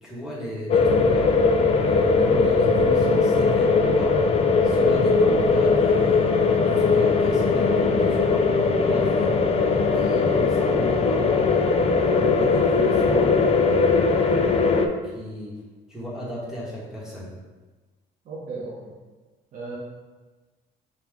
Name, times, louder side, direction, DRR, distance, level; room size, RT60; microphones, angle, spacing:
voice 1, 0.0-1.4 1.8-4.2 4.6-8.5 8.8-9.3 9.9-11.7 12.1-14.5 15.0-15.6 15.9-17.3, left 1 dB, 5° right, -6 dB, 1.2 m, -34 dB
sound 1, 0.7-14.9, left 4 dB, 35° left, 0.4 m, -20 dB
voice 2, 18.2-18.9 19.5-19.8, right 3 dB, 55° right, -4 dB, 0.8 m, -35 dB
5.9 x 2.3 x 3.5 m, 1.3 s
cardioid pair, 110°, 17 cm